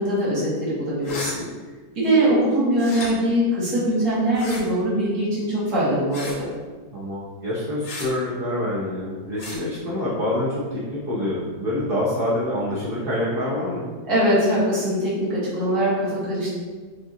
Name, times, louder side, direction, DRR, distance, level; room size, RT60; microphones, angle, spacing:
voice 1, 0.0-1.4 2.0-6.5 14.1-16.5, right 1 dB, 70° right, -9 dB, 2.0 m, -22 dB
sound 1, 1.0-1.4 2.8-3.1 4.3-4.6 6.1-6.4 7.8-8.1 9.4-9.6, left 2 dB, 85° left, 1.4 m, -34 dB
voice 2, 6.9-13.9, left 1 dB, 50° right, -7 dB, 0.7 m, -26 dB
6.2 x 2.4 x 2.7 m, 1.4 s
omnidirectional pair, 1.7 m